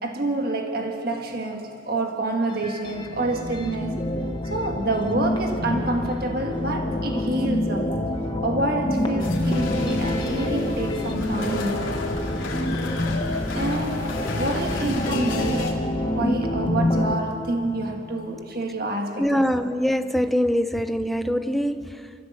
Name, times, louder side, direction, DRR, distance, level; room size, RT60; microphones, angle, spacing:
voice 1, 0.0-4.0 4.4-7.9 8.4-11.9 13.5-19.4, right 2 dB, 50° right, 2 dB, 1.6 m, -28 dB
sound 1, 2.5-17.1, left 1 dB, 25° left, 0.9 m, -27 dB
sound 2, 9.2-15.7, left 2 dB, 80° left, 2.9 m, -31 dB
voice 2, 19.2-22.1, equal, ahead, 9 dB, 0.6 m, -23 dB
27.5 x 14.5 x 7.7 m, 2.6 s
head